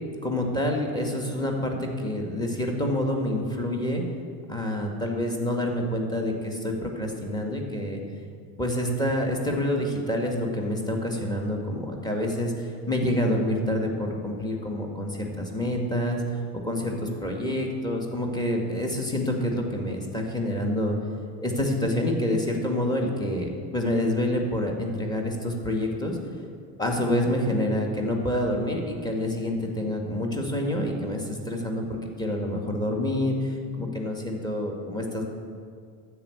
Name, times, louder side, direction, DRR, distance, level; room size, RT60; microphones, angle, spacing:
voice 1, 0.2-4.0 4.5-8.0 8.6-21.0 21.4-26.2 26.8-35.3, left 1 dB, 10° left, 1 dB, 1.7 m, -27 dB
12.5 x 4.8 x 8.3 m, 2.2 s
supercardioid pair, 105°, 48 cm